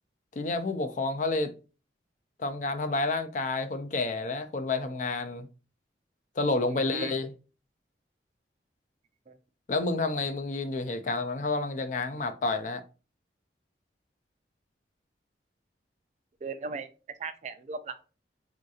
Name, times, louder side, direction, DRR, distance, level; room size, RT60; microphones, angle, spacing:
voice 1, 0.3-1.5 2.4-5.5 6.4-7.3 9.7-12.8, left 3 dB, 45° left, 0.3 m, -29 dB
voice 2, 6.7-7.1 9.3-9.4 16.4-16.9 17.2-18.0, right 4 dB, 40° right, 0.3 m, -37 dB
3.6 x 2.7 x 2.4 m
head